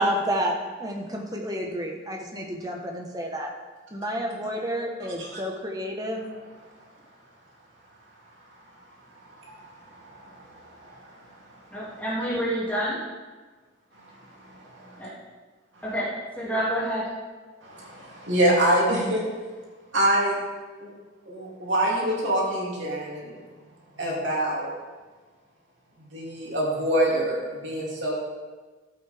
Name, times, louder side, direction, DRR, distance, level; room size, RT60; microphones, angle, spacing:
voice 1, 0.0-3.5 3.9-6.3, equal, 20° right, 1 dB, 1.3 m, -30 dB
voice 2, 9.2-11.2 14.0-15.1 17.6-19.2 19.9-20.4 20.8-20.9 21.2-23.4 24.0-24.7 26.1-28.1, right 1 dB, 75° right, -4 dB, 3.1 m, -26 dB
voice 3, 11.7-13.0 15.0-15.1 15.8-16.1 16.4-17.1, equal, 10° left, -8 dB, 2.6 m, -28 dB
14.5 x 8.3 x 3.6 m, 1.3 s
head